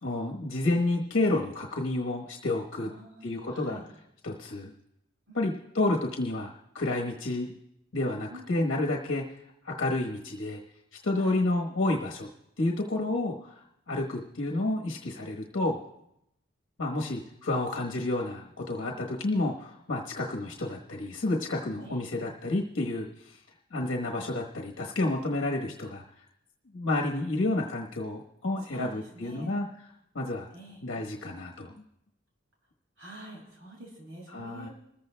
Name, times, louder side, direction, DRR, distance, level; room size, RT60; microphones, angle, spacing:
voice 1, 0.0-2.9 3.2-3.8 4.2-4.7 5.3-6.5 6.7-7.5 7.9-9.2 9.6-10.6 11.0-12.3 12.6-13.6 13.9-15.8 16.8-23.4 23.7-26.0 26.7-29.7 30.1-30.5 30.8-31.7 34.3-34.7, left 2 dB, 70° left, -1 dB, 1.2 m, -30 dB
voice 2, 2.8-3.9 5.3-5.5 8.3-8.7 11.1-11.5 18.7-19.0 21.8-22.0 28.7-29.5 30.5-30.8 33.0-34.7, right 1 dB, 85° right, -3 dB, 6.7 m, -47 dB
27.0 x 14.5 x 2.2 m, 0.82 s
head